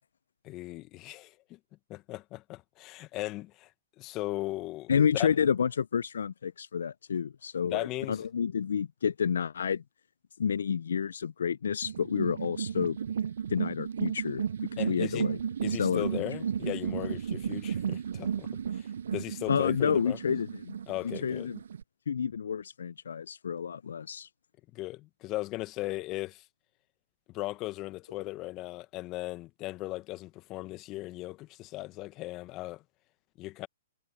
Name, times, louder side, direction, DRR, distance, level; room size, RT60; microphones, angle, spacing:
voice 1, 0.4-1.6 1.9-3.7 4.0-5.3 7.6-8.3 14.8-15.3 15.6-20.2 20.9-21.5 24.7-26.4 27.3-32.8 33.4-33.7, left 18 dB, 35° left, 1.0 m, -37 dB
voice 2, 4.9-9.8 10.4-13.0 13.5-14.4 14.8-15.4 15.7-16.0 19.5-20.7 21.0-21.6 22.1-24.3, left 7 dB, 75° left, 0.4 m, -29 dB
sound 1, 11.8-21.8, right 7 dB, 70° right, 0.3 m, -34 dB
hypercardioid pair, 125°, 0 cm